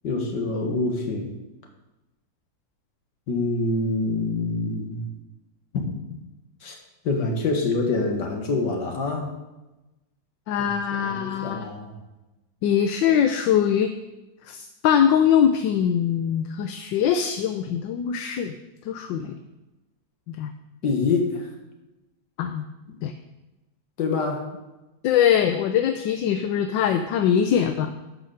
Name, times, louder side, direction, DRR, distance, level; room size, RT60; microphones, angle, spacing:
voice 1, 0.0-1.3 3.3-5.1 5.7-6.2 6.6-6.8 7.0-9.3 10.9-12.0 20.8-21.5 24.0-24.5, left 3 dB, 65° left, 2 dB, 2.2 m, -26 dB
voice 2, 10.5-11.7 12.6-13.9 14.5-18.5 18.8-19.4 20.3-20.5 22.4-22.6 23.0-23.1 25.0-27.9, left 8 dB, 80° left, 7 dB, 1.3 m, -22 dB
12.0 x 5.1 x 6.5 m, 1.0 s
omnidirectional pair, 2.0 m